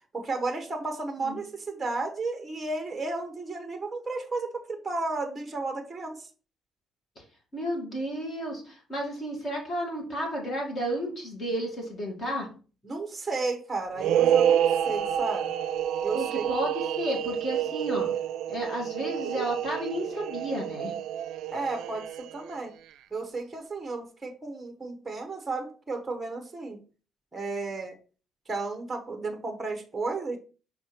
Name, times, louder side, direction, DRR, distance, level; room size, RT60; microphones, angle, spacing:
voice 1, 0.1-6.3 12.8-15.5 16.0-16.5 21.5-22.7 23.1-26.8 27.3-28.0 28.5-30.4, right 3 dB, 10° right, 5 dB, 0.9 m, -33 dB
voice 2, 7.5-12.5 16.1-18.1 18.5-20.9, equal, 30° left, -1 dB, 2.3 m, -32 dB
sound 1, 13.9-22.5, right 10 dB, 75° right, 0.5 m, -28 dB
5.7 x 4.5 x 4.3 m, 0.37 s
cardioid pair, 180°, 0 cm